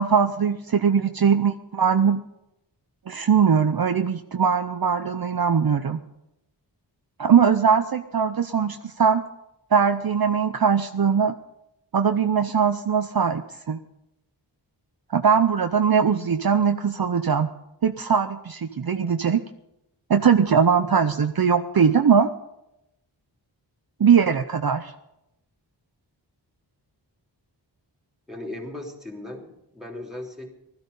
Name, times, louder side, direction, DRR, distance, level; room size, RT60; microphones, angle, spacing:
voice 1, 0.0-2.2 3.1-6.0 7.2-9.2 9.7-11.3 11.9-13.8 15.1-17.5 17.8-19.4 20.1-22.3 24.0-24.9, right 6 dB, 55° right, 8 dB, 0.7 m, -20 dB
voice 2, 28.3-30.5, left 1 dB, ahead, 2 dB, 3.4 m, -37 dB
16.0 x 13.5 x 5.4 m, 0.86 s
wide cardioid pair, 75°, 44 cm